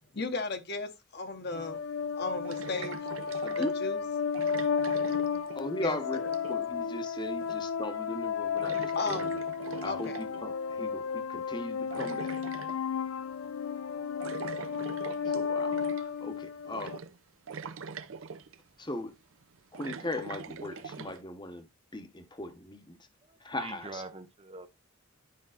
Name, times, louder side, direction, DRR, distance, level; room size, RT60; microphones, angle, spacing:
voice 1, 0.1-1.8 2.2-3.0 3.6-4.0 5.8-6.3 8.9-9.3 9.8-10.2, left 3 dB, 50° left, 1.1 m, -35 dB
sound 1, 1.5-17.0, left 6 dB, 75° left, 0.5 m, -33 dB
sound 2, 1.5-1.6 2.4-3.8 4.3-5.9 6.1-6.7 7.4-7.8 8.1-8.2 8.6-10.5 11.5-12.8 14.2-16.2 16.7-17.2 17.5-18.6 19.3-21.2, right 5 dB, 70° right, 0.6 m, -43 dB
voice 2, 3.4-3.8 5.5-9.4 9.8-12.4 15.2-17.0 18.8-19.1 19.7-21.7 21.9-23.1 23.4-24.0, left 2 dB, 20° left, 1.0 m, -38 dB
voice 3, 23.3-24.8, right 3 dB, 25° right, 0.6 m, -44 dB
11.5 x 5.3 x 2.5 m
head